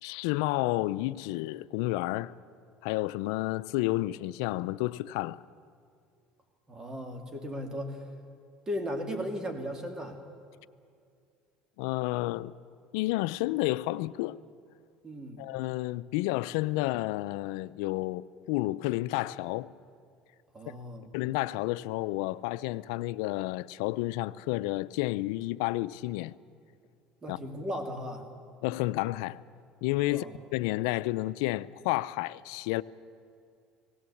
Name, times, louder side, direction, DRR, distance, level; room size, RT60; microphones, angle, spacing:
voice 1, 0.0-2.3 2.8-5.4 11.8-12.5 12.9-14.4 15.4-19.7 21.1-26.3 27.3-27.4 28.6-29.4 29.8-30.3 30.5-32.8, left 18 dB, 85° left, 0.5 m, -30 dB
voice 2, 6.7-8.0 8.7-10.2 15.0-15.4 20.5-21.1 27.2-28.3 30.1-30.3, equal, 25° right, 2.7 m, -36 dB
19.0 x 17.0 x 8.5 m
supercardioid pair, 110°, 3 cm